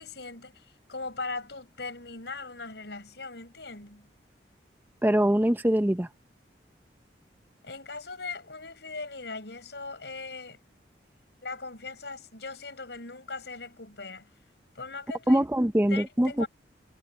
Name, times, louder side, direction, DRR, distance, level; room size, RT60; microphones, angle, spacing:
voice 1, 0.0-4.1 7.6-10.6 11.4-14.3 14.7-15.5 15.9-16.5, left 3 dB, 70° left, 4.8 m, -39 dB
voice 2, 5.0-6.1 15.3-16.5, equal, 10° right, 0.6 m, -23 dB
head